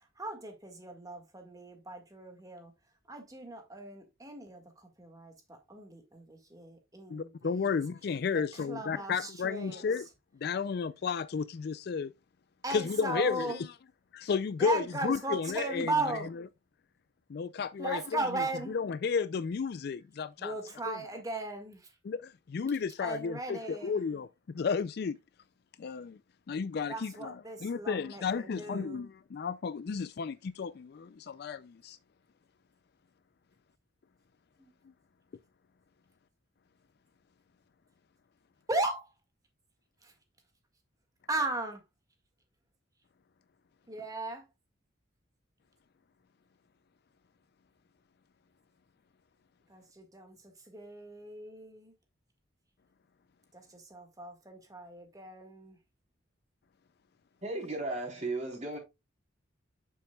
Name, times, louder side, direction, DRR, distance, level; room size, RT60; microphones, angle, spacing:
voice 1, 0.2-2.7 3.1-7.8 8.7-9.8 12.6-13.6 14.6-16.3 17.8-18.7 20.4-21.9 23.0-24.0 26.9-29.0 34.6-34.7 38.7-39.1 40.0-40.1 41.3-41.8 43.9-44.4 49.7-50.4 50.7-51.9 53.5-55.8, right 2 dB, 20° right, 1.8 m, -37 dB
voice 2, 7.1-10.1 10.4-12.1 12.7-13.7 14.1-16.4 17.3-20.6 20.9-21.0 22.0-24.3 24.5-25.2 25.8-26.2 26.5-32.0, left 5 dB, 55° left, 0.3 m, -33 dB
voice 3, 57.4-58.8, right 2 dB, 35° right, 3.6 m, -35 dB
8.3 x 7.1 x 2.3 m
head